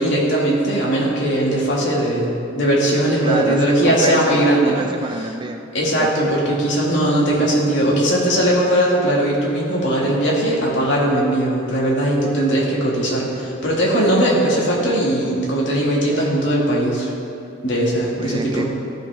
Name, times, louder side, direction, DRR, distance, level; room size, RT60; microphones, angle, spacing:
voice 1, 0.0-4.9 5.7-17.1 17.6-18.7, right 1 dB, 60° left, -4 dB, 2.0 m, -19 dB
voice 2, 3.2-5.6 6.0-6.1 18.2-18.7, right 2 dB, 25° right, 5 dB, 0.4 m, -27 dB
14.5 x 5.8 x 3.4 m, 2.6 s
head